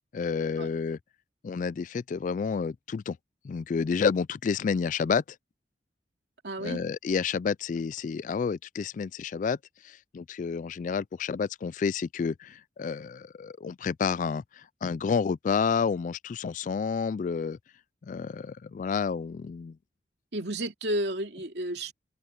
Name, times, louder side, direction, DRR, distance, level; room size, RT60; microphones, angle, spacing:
voice 1, 0.1-1.0 1.4-3.2 3.4-5.2 6.6-9.6 10.1-14.4 14.8-17.6 18.1-19.7, left 5 dB, 45° left, 0.3 m, -29 dB
voice 2, 6.4-6.8 20.3-21.9, right 1 dB, 70° right, 2.6 m, -32 dB
head